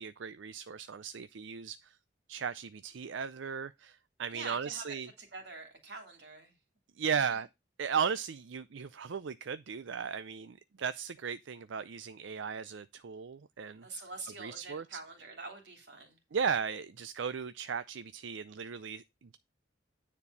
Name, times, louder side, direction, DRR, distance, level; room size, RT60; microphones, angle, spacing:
voice 1, 0.0-2.0 2.3-5.1 7.0-7.5 7.8-13.9 14.4-15.0 16.3-19.4, right 6 dB, 80° right, 0.5 m, -36 dB
voice 2, 4.3-6.5 7.2-7.3 13.8-16.2, right 3 dB, 60° right, 3.2 m, -45 dB
9.8 x 4.5 x 5.5 m
head